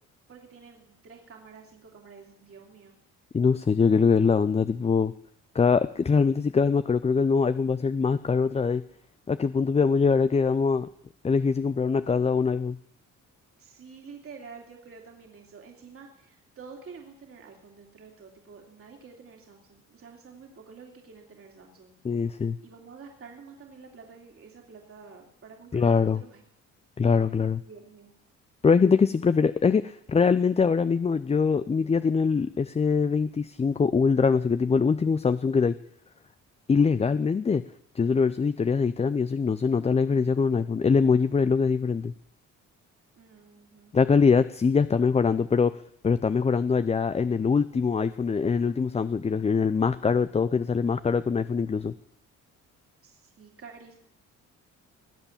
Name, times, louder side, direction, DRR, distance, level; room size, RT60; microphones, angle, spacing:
voice 1, 0.3-3.0 13.6-22.0 22.6-26.4 27.7-28.1 43.2-43.9 53.0-54.0, right 5 dB, 45° right, 1 dB, 2.7 m, -49 dB
voice 2, 3.3-5.1 5.5-8.8 9.3-10.9 11.2-12.8 22.0-22.6 25.7-26.2 27.0-27.6 28.6-35.8 36.7-37.6 38.0-42.1 43.9-45.8 46.0-51.9, left 5 dB, 20° left, 13 dB, 0.5 m, -23 dB
19.5 x 8.1 x 7.3 m, 0.70 s
cardioid pair, 90°, 30 cm